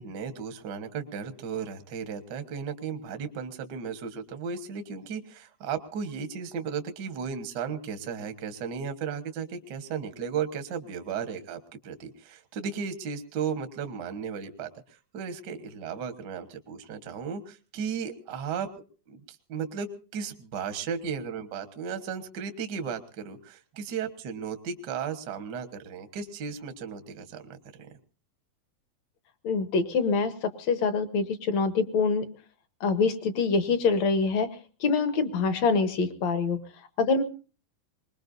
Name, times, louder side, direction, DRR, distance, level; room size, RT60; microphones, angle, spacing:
voice 1, 0.0-11.6 11.8-14.7 15.1-18.7 19.1-27.9, right 6 dB, 70° right, 8 dB, 1.0 m, -35 dB
voice 2, 29.4-32.3 32.8-34.5 34.8-36.6 37.0-37.2, left 4 dB, 65° left, 10 dB, 1.9 m, -25 dB
23.5 x 20.5 x 2.6 m, 0.37 s
omnidirectional pair, 4.1 m